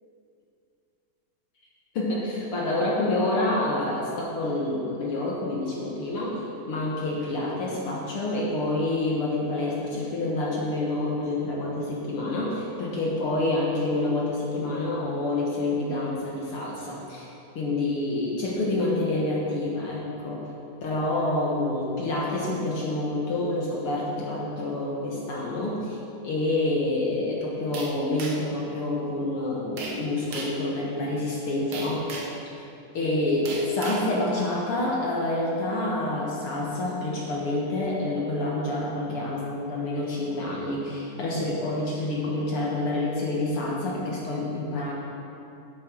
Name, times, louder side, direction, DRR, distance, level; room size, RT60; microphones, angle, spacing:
voice 1, 1.9-6.4 6.7-20.5 20.8-26.0 26.2-32.0 32.9-44.9, left 2 dB, 60° left, -4 dB, 1.5 m, -28 dB
sound 1, 27.7-28.6 29.8-30.0 30.3-30.6 31.7-32.4 33.4-34.1, right 3 dB, 80° right, 1.1 m, -36 dB
11.0 x 8.5 x 6.1 m, 2.7 s
omnidirectional pair, 4.3 m